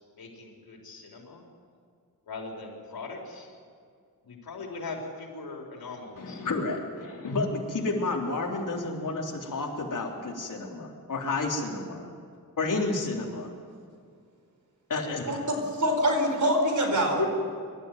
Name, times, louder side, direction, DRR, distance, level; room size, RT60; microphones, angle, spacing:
voice 1, 0.2-1.4 2.3-3.5 4.2-6.4, left 3 dB, 90° left, 0 dB, 4.3 m, -40 dB
voice 2, 6.2-12.1 12.6-13.5 14.9-15.4 17.2-17.3, left 3 dB, 60° left, 0 dB, 3.5 m, -30 dB
voice 3, 15.3-17.3, equal, 55° right, 3 dB, 4.6 m, -25 dB
24.5 x 13.5 x 9.4 m, 2.2 s
wide cardioid pair, 140°, 35 cm